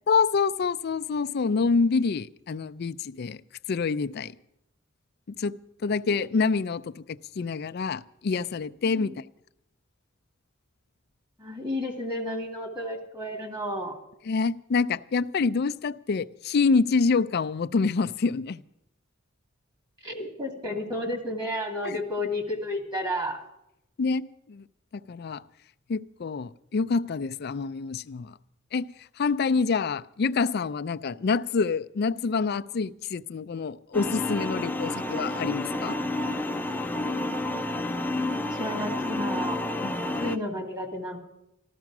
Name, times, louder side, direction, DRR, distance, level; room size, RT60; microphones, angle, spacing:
voice 1, 0.1-3.4 3.7-4.3 5.4-5.5 5.8-9.2 14.3-18.6 21.8-22.0 24.0-24.6 25.1-25.4 25.9-28.3 28.7-28.9 29.2-36.0 39.8-39.9, left 4 dB, 55° left, 0.4 m, -26 dB
voice 2, 11.4-14.0 20.0-23.4 38.3-39.6 39.9-41.2, left 1 dB, 20° right, 2.2 m, -32 dB
sound 1, 33.9-40.4, left 2 dB, 10° left, 0.6 m, -30 dB
14.0 x 13.0 x 6.0 m
head